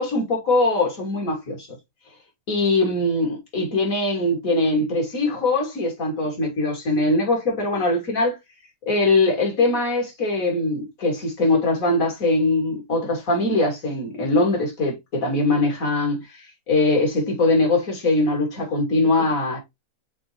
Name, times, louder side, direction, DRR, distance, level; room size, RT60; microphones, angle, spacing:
voice 1, 0.0-1.7 2.5-8.4 8.9-19.6, left 2 dB, 50° left, 2.9 m, -22 dB
7.0 x 4.0 x 3.4 m
omnidirectional pair, 1.9 m